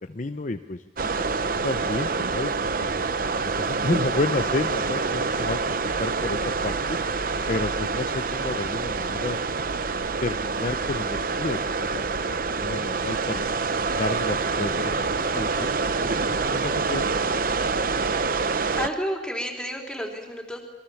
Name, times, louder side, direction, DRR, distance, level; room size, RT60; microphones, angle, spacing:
voice 1, 0.1-0.8 1.4-2.9 3.4-7.0 7.5-9.4 10.2-13.4 13.8-17.1, left 2 dB, 45° left, 7 dB, 0.8 m, -31 dB
sound 1, 1.0-18.9, right 4 dB, 50° right, 0.8 m, -26 dB
voice 2, 18.8-20.6, equal, 5° left, 0 dB, 3.8 m, -30 dB
27.5 x 22.5 x 7.2 m, 1.1 s
head